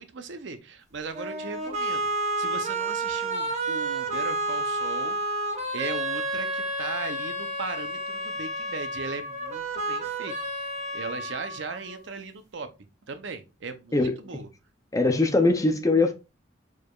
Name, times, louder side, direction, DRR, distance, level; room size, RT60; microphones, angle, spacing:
voice 1, 0.0-5.2 5.7-10.3 10.6-12.7 13.1-14.5, right 4 dB, 70° right, 0.7 m, -38 dB
sound 1, 1.1-12.1, right 2 dB, 35° right, 1.0 m, -30 dB
voice 2, 14.9-16.1, left 2 dB, 15° left, 0.6 m, -21 dB
4.7 x 4.7 x 2.4 m
head